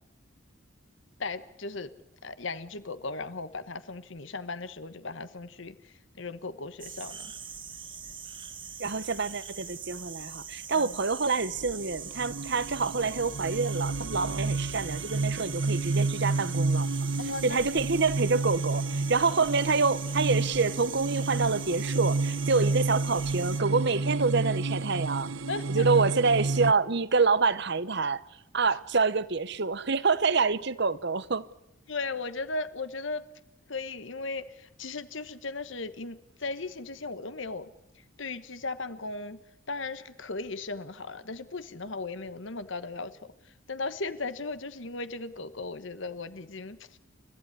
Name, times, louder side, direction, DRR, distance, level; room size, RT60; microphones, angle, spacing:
voice 1, 1.2-1.9 2.2-7.3 10.7-11.0 17.2-17.6 22.6-22.7 25.5-25.9 31.9-33.3 33.7-37.7 38.2-39.4 39.7-43.2 43.7-47.0, left 3 dB, 65° left, 1.2 m, -37 dB
sound 1, 6.8-23.6, right 6 dB, 25° right, 2.1 m, -42 dB
voice 2, 8.8-16.9 17.4-25.3 25.7-28.2 28.5-31.5, right 4 dB, 55° right, 1.0 m, -27 dB
sound 2, 11.4-26.7, right 3 dB, 75° right, 0.9 m, -30 dB
30.0 x 14.5 x 9.7 m
head